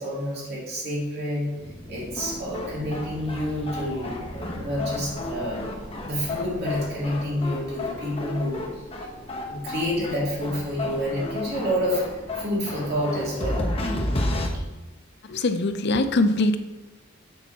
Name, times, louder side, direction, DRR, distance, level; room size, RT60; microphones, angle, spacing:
voice 1, 0.0-1.5 1.9-5.6 6.0-8.6 9.4-13.7, equal, 50° right, -6 dB, 2.8 m, -28 dB
sound 1, 1.5-14.5, left 1 dB, 30° left, 1.1 m, -32 dB
voice 2, 15.3-16.6, left 2 dB, 55° left, 9 dB, 0.6 m, -22 dB
7.1 x 6.9 x 4.1 m, 1.1 s
head